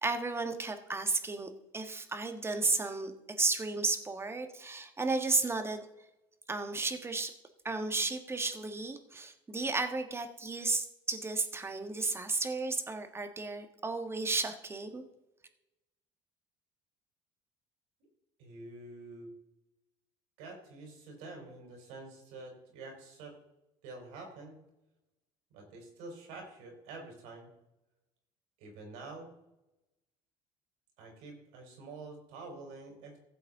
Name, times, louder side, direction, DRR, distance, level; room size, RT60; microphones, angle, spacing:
voice 1, 0.0-3.1 3.4-5.9 6.5-7.3 7.6-15.0, right 3 dB, 20° right, 7 dB, 1.4 m, -33 dB
voice 2, 18.4-19.3 20.4-23.4 23.8-24.6 25.5-27.5 28.6-29.3 31.0-33.2, right 3 dB, 85° right, 2 dB, 4.0 m, -47 dB
15.0 x 7.7 x 3.7 m, 0.94 s
supercardioid pair, 90°, 12 cm